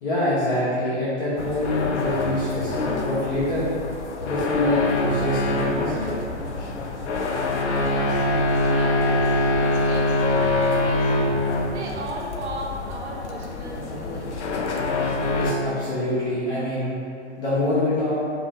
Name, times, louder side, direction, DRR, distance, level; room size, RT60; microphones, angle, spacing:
voice 1, 0.0-3.7 4.2-6.1 15.4-16.9 17.4-18.2, left 1 dB, 45° left, -11 dB, 1.2 m, -25 dB
sound 1, 1.4-15.5, left 2 dB, 70° left, 0.5 m, -24 dB
voice 2, 7.6-8.3 8.6-11.3 11.7-14.5, right 1 dB, 65° right, -3 dB, 0.9 m, -36 dB
5.2 x 2.1 x 2.8 m, 2.5 s
figure-of-eight pair, 110°, 36 cm